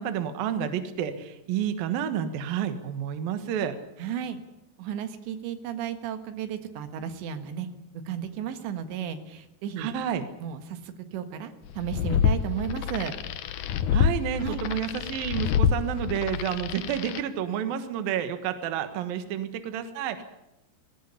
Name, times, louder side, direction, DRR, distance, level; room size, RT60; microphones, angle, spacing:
voice 1, 0.0-3.8 9.8-10.2 13.9-20.2, right 9 dB, 65° right, 9 dB, 3.0 m, -30 dB
voice 2, 4.0-4.4 4.8-7.7 8.1-9.9 10.4-13.2 14.4-14.6, right 9 dB, 85° right, 9 dB, 3.8 m, -34 dB
sound 1, 11.7-17.2, left 7 dB, 80° left, 1.7 m, -27 dB
20.0 x 17.5 x 10.0 m, 0.89 s
omnidirectional pair, 5.0 m